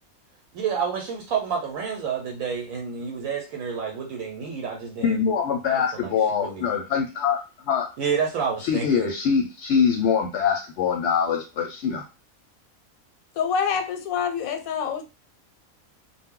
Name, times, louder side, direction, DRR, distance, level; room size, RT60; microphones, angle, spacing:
voice 1, 0.5-5.2 5.6-6.6 8.0-9.1, right 6 dB, 80° right, 1 dB, 1.0 m, -29 dB
voice 2, 5.0-7.4 7.7-7.9 8.6-12.0, left 7 dB, 65° left, 2 dB, 0.8 m, -23 dB
voice 3, 13.4-15.0, left 7 dB, 90° left, 7 dB, 1.0 m, -26 dB
2.2 x 2.0 x 3.6 m, 0.29 s
omnidirectional pair, 1.4 m